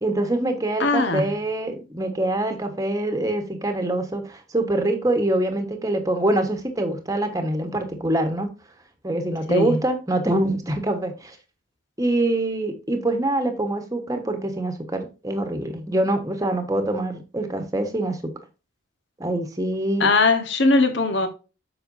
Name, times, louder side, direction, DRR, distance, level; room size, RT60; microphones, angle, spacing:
voice 1, 0.0-8.5 9.0-11.3 12.0-18.2 19.2-20.1, right 1 dB, 15° right, 1.3 m, -24 dB
voice 2, 0.8-1.3 9.5-9.8 20.0-21.3, left 3 dB, 60° left, 1.3 m, -20 dB
7.8 x 6.6 x 2.7 m
head